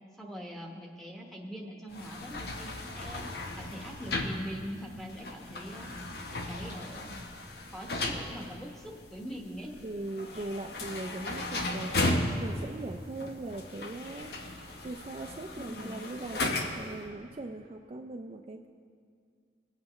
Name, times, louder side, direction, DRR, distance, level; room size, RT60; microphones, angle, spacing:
voice 1, 0.2-3.3 3.5-5.9 6.3-7.2 7.7-9.7 15.6-16.0, equal, ahead, -1 dB, 1.1 m, -42 dB
sound 1, 1.9-17.0, left 2 dB, 65° left, 0.9 m, -36 dB
voice 2, 9.8-14.4 14.8-18.7, right 2 dB, 35° right, 3 dB, 0.4 m, -40 dB
20.0 x 8.4 x 3.1 m, 2.2 s
head